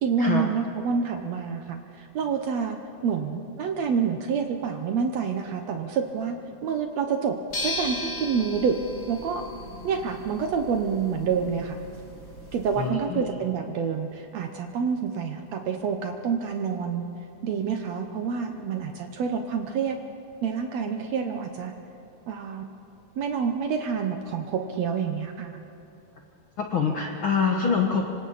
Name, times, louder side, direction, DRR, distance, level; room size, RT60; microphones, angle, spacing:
voice 1, 0.0-2.8 3.0-6.4 6.6-7.3 7.6-8.7 9.1-9.4 9.8-11.8 12.5-17.0 17.4-20.0 20.4-21.7 22.3-22.6 23.2-25.6, right 6 dB, 90° right, 5 dB, 1.5 m, -27 dB
sound 1, 7.5-12.9, left 1 dB, 20° left, 4.9 m, -37 dB
voice 2, 12.8-13.2 26.6-28.1, left 5 dB, 80° left, 1 dB, 1.1 m, -25 dB
26.0 x 26.0 x 4.1 m, 2.8 s
omnidirectional pair, 4.5 m